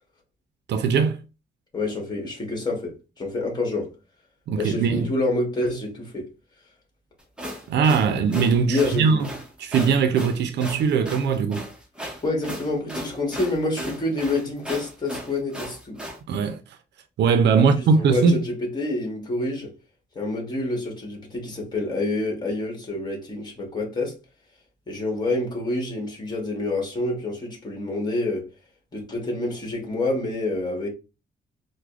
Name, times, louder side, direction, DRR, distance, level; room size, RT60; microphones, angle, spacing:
voice 1, 0.7-1.2 4.5-5.1 7.7-9.3 9.6-11.6 16.3-16.6 17.2-18.4, right 5 dB, 90° right, 0.4 m, -20 dB
voice 2, 1.7-3.9 4.6-6.3 8.6-9.3 12.2-16.0 17.7-19.7 20.1-24.2 24.9-28.5 28.9-30.9, left 2 dB, 25° left, 1.2 m, -27 dB
sound 1, 7.2-16.2, equal, 5° right, 0.7 m, -35 dB
4.7 x 2.1 x 2.4 m
wide cardioid pair, 145°, 17 cm